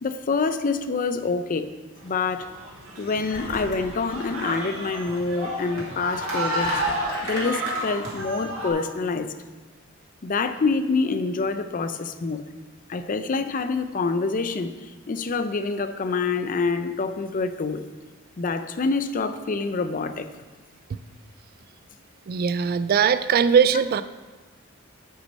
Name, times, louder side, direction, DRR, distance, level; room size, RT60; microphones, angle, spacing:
voice 1, 0.0-1.7 2.0-2.5 3.0-6.7 7.2-9.3 10.2-12.4 12.9-17.9 18.4-20.3, left 4 dB, 40° left, 10 dB, 0.5 m, -26 dB
sound 1, 2.0-8.7, right 1 dB, 80° right, 2.3 m, -31 dB
Engine, 3.2-4.7 6.5-7.8, left 3 dB, 55° left, 1.3 m, -37 dB
voice 2, 22.3-24.0, right 7 dB, 45° right, 14 dB, 0.3 m, -20 dB
8.3 x 6.2 x 5.3 m, 1.3 s
head